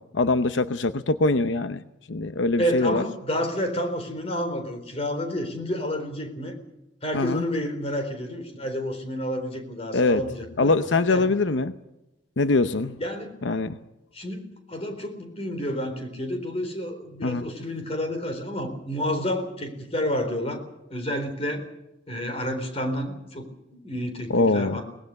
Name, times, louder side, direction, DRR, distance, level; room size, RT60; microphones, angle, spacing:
voice 1, 0.1-1.8 2.1-3.0 7.1-7.4 9.9-10.2 10.6-11.7 12.4-12.9 13.4-13.8 17.2-17.5 24.3-24.8, left 3 dB, 85° left, 11 dB, 0.8 m, -23 dB
voice 2, 2.6-6.5 7.0-10.7 11.1-11.3 13.0-13.4 14.1-14.4 14.7-21.6 22.1-24.8, equal, 35° left, 5 dB, 4.0 m, -30 dB
23.0 x 19.0 x 6.6 m, 0.93 s
head